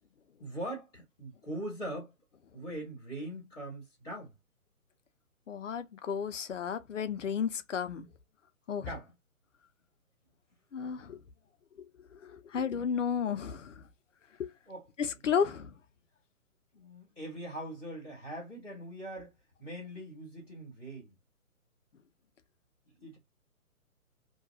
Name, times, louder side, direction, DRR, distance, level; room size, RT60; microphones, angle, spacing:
voice 1, 0.4-2.1 2.5-4.3 8.8-9.1 14.7-14.9 16.7-19.3 19.6-21.1 23.0-23.2, right 1 dB, 5° left, 0.5 m, -41 dB
voice 2, 5.5-8.1 8.7-8.9 10.7-11.2 12.2-13.7 14.4-14.5 15.2-15.7, left 7 dB, 55° left, 0.6 m, -32 dB
2.8 x 2.3 x 2.5 m
figure-of-eight pair, 140°, 44 cm